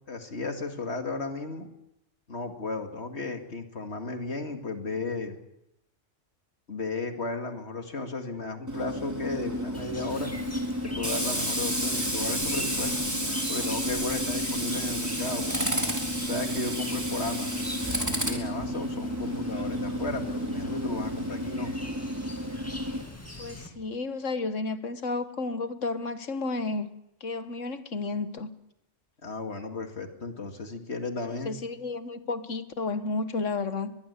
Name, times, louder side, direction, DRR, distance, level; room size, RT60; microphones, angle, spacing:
voice 1, 0.1-1.7 2.3-5.4 6.7-10.3 10.8-13.1 13.5-15.7 16.2-17.7 18.2-21.7 29.2-31.5, left 3 dB, 60° left, 2.5 m, -34 dB
Tools, 8.7-23.0, equal, 15° right, 3.9 m, -31 dB
Chirp tweet, 9.7-23.7, equal, 10° left, 2.3 m, -43 dB
voice 2, 23.4-26.9 27.2-28.5 31.5-34.0, left 3 dB, 80° left, 1.8 m, -32 dB
22.5 x 22.0 x 8.3 m
omnidirectional pair, 1.3 m